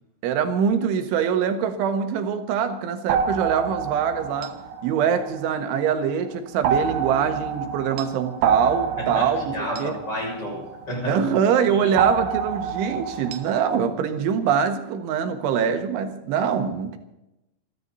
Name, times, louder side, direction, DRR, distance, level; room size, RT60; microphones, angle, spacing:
voice 1, 0.2-4.5 4.8-9.9 11.1-17.0, right 7 dB, 85° right, 7 dB, 4.0 m, -23 dB
sound 1, 3.1-5.9 6.6-11.2 12.0-13.8, right 6 dB, 70° right, 2.6 m, -28 dB
voice 2, 9.0-11.2 11.7-12.0, left 1 dB, 20° left, -2 dB, 7.1 m, -31 dB
29.0 x 12.0 x 4.1 m, 0.92 s
omnidirectional pair, 5.3 m